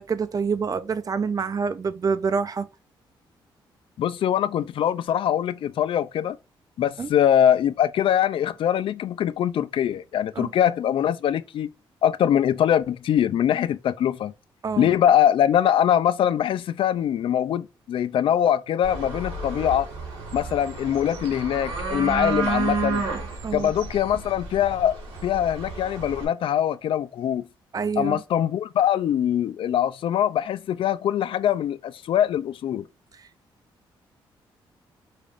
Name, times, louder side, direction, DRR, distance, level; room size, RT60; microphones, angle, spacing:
voice 1, 0.0-2.7 7.0-7.1 10.4-10.5 14.6-14.9 23.4-23.7 27.7-28.2, right 5 dB, 40° right, 0.5 m, -26 dB
voice 2, 4.0-6.4 6.8-11.7 12.0-14.3 14.8-19.9 20.3-23.0 23.5-27.4 28.0-32.8, left 10 dB, 70° left, 0.4 m, -23 dB
sound 1, 18.8-26.2, right 3 dB, 90° right, 1.6 m, -31 dB
5.0 x 3.4 x 2.5 m
cardioid pair, 70°, 9 cm